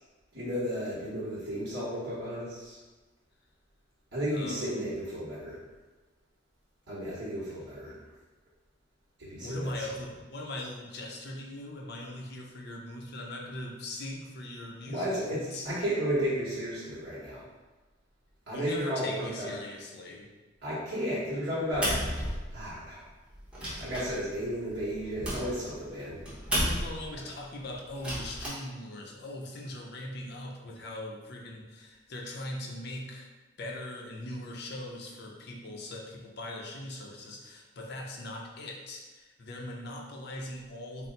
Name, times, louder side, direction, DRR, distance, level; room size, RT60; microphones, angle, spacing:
voice 1, 0.3-2.8 4.1-5.6 6.9-8.0 9.2-9.7 14.9-17.4 18.5-19.5 20.6-22.0 22.5-23.0 23.8-26.2, equal, 60° right, -9 dB, 1.1 m, -33 dB
voice 2, 4.3-4.8 9.4-15.8 18.5-20.3 26.6-33.3 33.6-41.1, left 1 dB, 55° left, 0 dB, 0.6 m, -40 dB
sound 1, 21.7-22.9 23.3-27.2 27.9-28.5, equal, 5° right, 0.9 m, -33 dB
4.2 x 2.0 x 3.8 m, 1.2 s
head